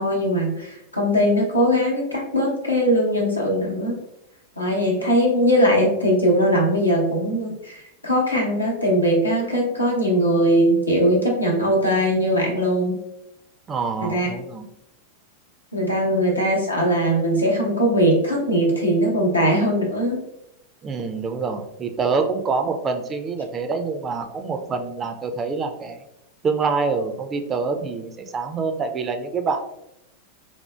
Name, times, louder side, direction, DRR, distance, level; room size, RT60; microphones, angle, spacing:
voice 1, 0.0-4.0 4.6-13.0 14.0-14.3 15.7-20.2, equal, 85° left, -2 dB, 0.8 m, -20 dB
voice 2, 13.7-14.7 20.8-26.0 26.4-29.6, right 4 dB, 25° right, 5 dB, 0.4 m, -26 dB
4.3 x 2.1 x 2.2 m, 0.81 s
figure-of-eight pair, 90°, 0 cm